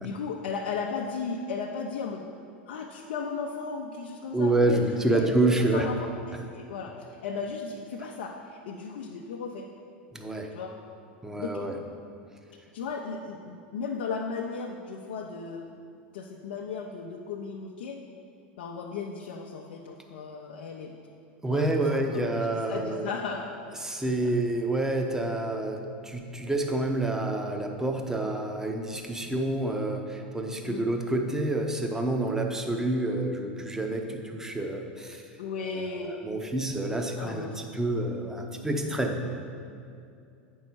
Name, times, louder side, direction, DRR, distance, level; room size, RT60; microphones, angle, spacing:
voice 1, 0.0-2.3 2.7-5.3 5.6-9.7 10.5-10.8 11.4-11.6 12.7-15.7 16.1-18.0 18.6-21.0 21.5-22.2 22.7-23.5 24.0-24.3 30.7-30.9 35.4-36.2 37.2-37.7 38.8-39.0, left 5 dB, 75° left, -1 dB, 0.6 m, -36 dB
voice 2, 4.3-5.9 10.1-10.5 11.2-11.8 21.4-23.1 23.8-35.2 35.6-39.4, right 2 dB, 10° right, 3 dB, 0.9 m, -28 dB
8.4 x 5.5 x 4.6 m, 2.5 s
hypercardioid pair, 95°, 6 cm